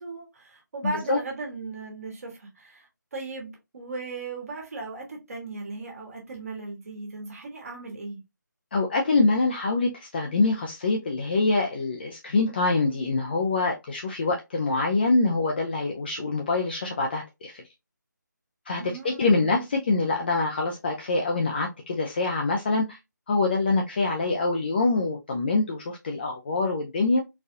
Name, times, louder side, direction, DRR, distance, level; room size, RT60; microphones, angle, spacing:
voice 1, 0.0-8.2 18.8-19.6, right 3 dB, 50° right, 1.4 m, -37 dB
voice 2, 8.7-17.6 18.7-23.0 23.3-27.2, left 3 dB, 30° left, 0.5 m, -25 dB
3.9 x 2.4 x 2.7 m
figure-of-eight pair, 160°, 10 cm